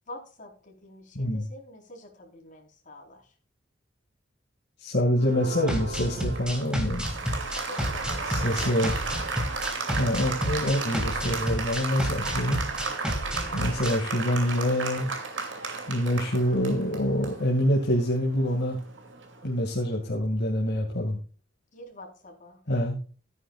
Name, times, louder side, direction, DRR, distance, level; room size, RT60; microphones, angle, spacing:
voice 1, 0.1-3.2 7.7-8.5 13.5-14.0 21.7-22.6, left 1 dB, 45° left, 0 dB, 4.3 m, -45 dB
voice 2, 1.1-1.5 4.8-7.1 8.2-9.0 10.0-12.6 13.5-15.1 15.9-18.8 19.4-21.2 22.7-23.0, equal, 60° left, -1 dB, 2.3 m, -26 dB
Applause, 5.2-19.5, right 4 dB, 75° right, 2.7 m, -34 dB
sound 1, 5.7-14.0, equal, 5° right, 2.5 m, -31 dB
15.0 x 9.7 x 2.4 m, 0.38 s
head